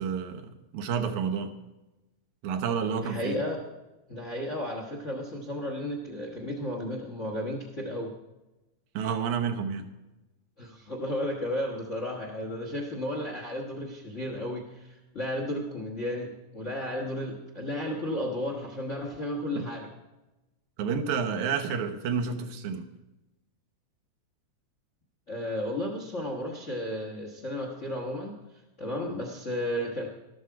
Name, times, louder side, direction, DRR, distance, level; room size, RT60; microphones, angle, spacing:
voice 1, 0.0-1.5 2.4-3.4 8.9-9.9 19.6-19.7 20.8-22.9, right 6 dB, 80° right, 5 dB, 2.4 m, -30 dB
voice 2, 3.0-3.6 4.1-8.1 10.6-19.9 25.3-28.4 28.8-30.1, left 1 dB, 40° left, 2 dB, 1.0 m, -33 dB
12.5 x 12.5 x 4.7 m, 1.0 s
omnidirectional pair, 3.3 m